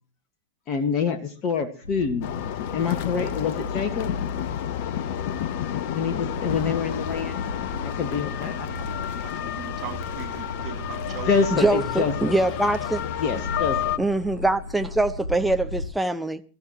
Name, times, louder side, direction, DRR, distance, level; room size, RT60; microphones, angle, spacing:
voice 1, 0.7-2.3 2.7-4.1 5.9-7.5 7.8-9.0 11.3-12.3 13.2-13.9, left 5 dB, 35° left, 1.6 m, -26 dB
sound 1, 1.8-15.9, left 2 dB, 80° left, 1.7 m, -35 dB
sound 2, 2.2-14.0, left 11 dB, 50° left, 0.8 m, -31 dB
voice 2, 9.2-11.4, right 11 dB, 35° right, 2.2 m, -39 dB
voice 3, 11.5-13.0 14.0-16.4, right 2 dB, 5° right, 1.0 m, -23 dB
24.0 x 13.5 x 3.0 m
figure-of-eight pair, 90°, 0 cm